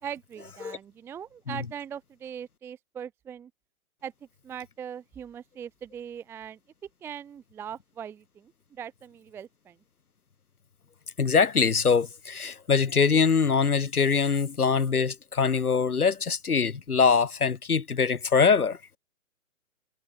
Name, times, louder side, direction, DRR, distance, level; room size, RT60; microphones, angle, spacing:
voice 1, 0.0-3.5 4.0-4.1 4.4-6.6 7.0-9.8, right 8 dB, 5° right, 0.8 m, -40 dB
voice 2, 11.2-18.8, left 5 dB, 80° left, 1.4 m, -23 dB
figure-of-eight pair, 135°, 44 cm